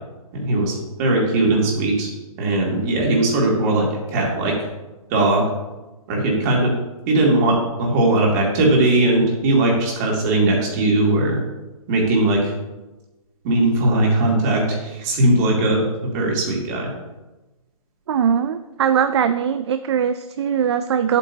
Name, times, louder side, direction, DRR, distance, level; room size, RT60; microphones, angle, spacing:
voice 1, 0.3-2.1 2.4-4.5 5.1-5.4 6.1-6.7 7.1-11.4 11.9-12.5 13.4-15.9 16.1-16.9, right 2 dB, 30° right, -2 dB, 2.5 m, -19 dB
voice 2, 18.1-21.2, right 8 dB, 50° right, 10 dB, 0.4 m, -20 dB
11.0 x 8.2 x 2.8 m, 1.1 s
hypercardioid pair, 155°, 19 cm